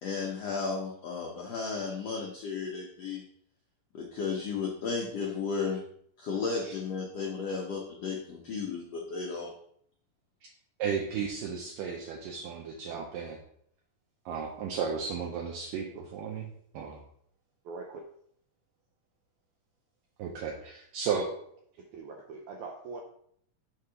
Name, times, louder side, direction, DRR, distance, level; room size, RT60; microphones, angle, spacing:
voice 1, 0.0-3.2 3.9-5.8 6.2-9.5, left 5 dB, 85° left, -1 dB, 1.4 m, -34 dB
voice 2, 10.8-13.4 14.3-17.0 20.2-21.3, right 6 dB, 75° right, 1 dB, 2.2 m, -34 dB
voice 3, 17.6-18.0 21.9-23.0, right 4 dB, 90° right, 2 dB, 1.6 m, -41 dB
7.9 x 3.8 x 5.7 m, 0.67 s
omnidirectional pair, 4.3 m